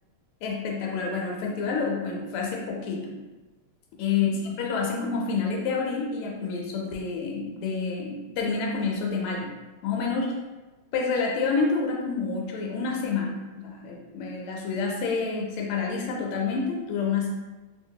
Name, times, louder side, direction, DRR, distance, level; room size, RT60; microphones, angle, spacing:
voice 1, 0.4-3.1 4.0-4.3 4.6-9.5 9.8-10.4 10.9-17.3, left 5 dB, 90° left, -1 dB, 1.5 m, -28 dB
3.2 x 2.8 x 2.7 m, 1.2 s
omnidirectional pair, 2.4 m